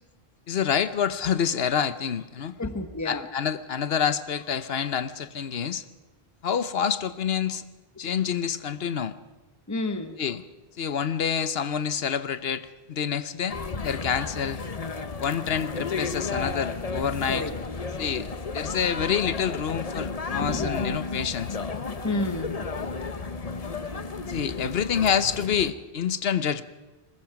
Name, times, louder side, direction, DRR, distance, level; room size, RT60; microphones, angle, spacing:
voice 1, 0.5-2.5 3.0-5.8 6.4-7.6 8.0-9.1 10.2-10.4 10.8-14.6 15.2-17.4 18.0-18.3 18.5-21.6 24.3-26.6, left 7 dB, 70° left, 13 dB, 1.1 m, -27 dB
voice 2, 2.6-3.3 9.7-10.2 17.3-17.5 20.4-20.8 22.0-22.5, left 2 dB, 15° left, 8 dB, 1.2 m, -30 dB
sound 1, 13.5-25.7, left 4 dB, 40° left, 1.0 m, -33 dB
22.0 x 20.0 x 5.9 m, 1.2 s
omnidirectional pair, 1.1 m